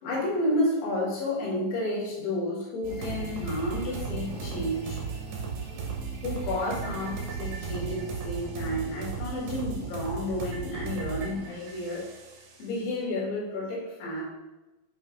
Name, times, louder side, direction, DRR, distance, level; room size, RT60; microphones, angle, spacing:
voice 1, 0.0-5.0 5.7-5.9 6.2-12.1 12.6-14.2, left 1 dB, 80° left, -5 dB, 4.5 m, -31 dB
sound 1, 2.8-12.7, right 5 dB, 85° right, 3.6 m, -36 dB
9.3 x 5.5 x 2.7 m, 1.1 s
omnidirectional pair, 5.2 m